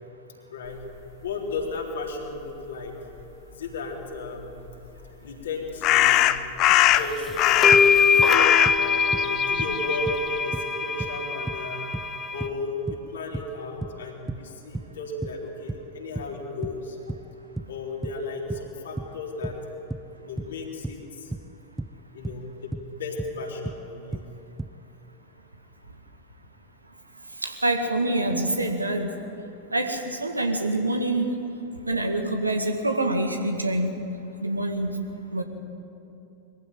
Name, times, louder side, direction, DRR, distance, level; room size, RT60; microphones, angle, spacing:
voice 1, 1.2-2.9 3.5-4.6 5.2-6.3 6.9-7.9 8.8-11.9 12.3-17.0 17.7-19.6 20.2-21.3 22.1-22.5 22.9-24.3, left 2 dB, 65° left, -1 dB, 3.7 m, -34 dB
sound 1, 4.7-4.8 5.8-8.0 8.2-10.4, left 14 dB, 40° left, 0.7 m, -21 dB
sound 2, 7.0-7.1 7.6-12.5, left 5 dB, 20° left, 1.1 m, -22 dB
sound 3, 7.3-8.4 8.7-9.8 10.1-15.9 16.2-23.4 23.7-24.7, right 2 dB, 5° right, 0.5 m, -35 dB
voice 2, 27.4-29.1 29.7-31.3 31.9-33.9 34.4-35.4, right 2 dB, 85° right, 5 dB, 1.9 m, -26 dB
22.5 x 15.0 x 9.3 m, 2.9 s
figure-of-eight pair, 90°, 0 cm